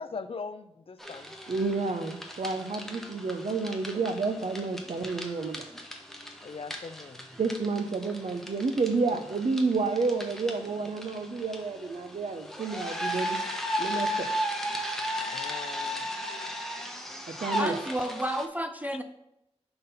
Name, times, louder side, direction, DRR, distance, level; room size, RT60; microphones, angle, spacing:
voice 1, 0.0-1.3 6.4-7.3 15.3-16.1, left 4 dB, 55° left, 12 dB, 0.4 m, -40 dB
sound 1, 1.0-18.5, equal, 5° left, 0.8 m, -36 dB
voice 2, 1.5-5.6 7.4-13.4 13.8-14.3 16.3-16.4 17.3-17.8, right 4 dB, 75° right, 8 dB, 0.6 m, -30 dB
voice 3, 17.6-19.0, right 1 dB, 15° right, 7 dB, 0.4 m, -31 dB
5.4 x 3.9 x 5.7 m, 0.84 s
wide cardioid pair, 75°, 11 cm